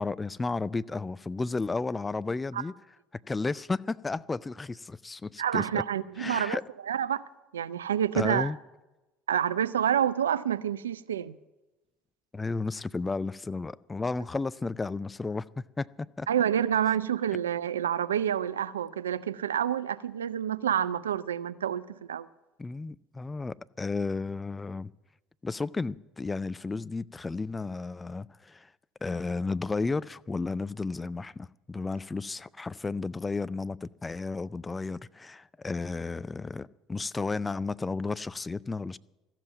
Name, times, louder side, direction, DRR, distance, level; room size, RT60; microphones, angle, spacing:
voice 1, 0.0-2.7 3.1-5.8 6.2-6.6 8.1-8.6 12.3-16.3 22.6-24.9 25.4-28.7 29.0-39.0, left 3 dB, 20° left, 0.4 m, -33 dB
voice 2, 5.4-6.6 6.9-7.2 7.5-8.5 9.3-11.4 16.3-22.3, right 9 dB, 85° right, 0.4 m, -28 dB
14.5 x 7.5 x 9.1 m
hypercardioid pair, 65°, 0 cm